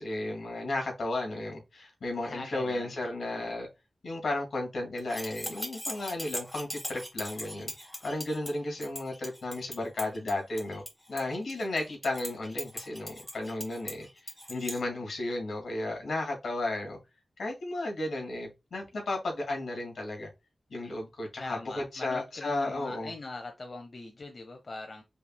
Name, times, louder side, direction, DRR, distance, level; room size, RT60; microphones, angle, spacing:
voice 1, 0.0-3.7 4.0-7.7 8.0-10.8 11.1-17.0 17.4-20.3 20.7-23.1, left 2 dB, 80° left, 2.5 m, -34 dB
voice 2, 2.2-2.9 21.4-25.0, left 2 dB, 45° left, 0.9 m, -42 dB
sound 1, 5.0-14.8, left 1 dB, 10° left, 2.4 m, -40 dB
5.5 x 3.5 x 2.3 m
wide cardioid pair, 85°, 0 cm